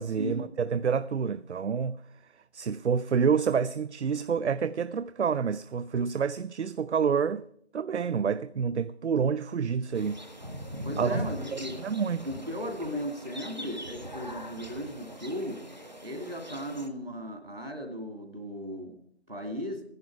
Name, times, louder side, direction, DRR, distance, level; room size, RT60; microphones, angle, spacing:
voice 1, 0.0-2.0 2.5-7.5 7.7-10.2 11.0-11.2 11.5-12.3, right 6 dB, 75° right, 0.5 m, -28 dB
sound 1, 9.9-16.9, equal, 40° right, 0.9 m, -41 dB
voice 2, 10.8-11.8 12.2-15.6 16.0-18.9 19.3-19.8, equal, 60° right, 2.4 m, -36 dB
14.5 x 11.0 x 4.6 m
figure-of-eight pair, 180°, 34 cm